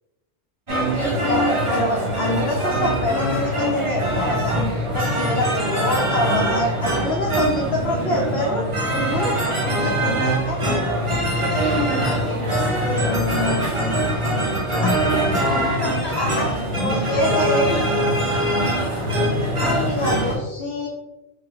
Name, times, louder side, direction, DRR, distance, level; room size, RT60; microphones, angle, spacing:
sound 1, 0.7-20.4, right 1 dB, 30° right, 0.8 m, -22 dB
voice 1, 0.9-4.6 4.9-8.6 8.9-9.4 9.8-10.6 14.8-14.9 16.2-17.8 19.6-20.9, left 1 dB, 65° left, -2 dB, 0.8 m, -25 dB
voice 2, 11.4-13.4 14.8-15.0 15.3-18.2, left 1 dB, 30° left, 0 dB, 0.5 m, -32 dB
5.0 x 2.2 x 2.9 m, 1.0 s
omnidirectional pair, 1.2 m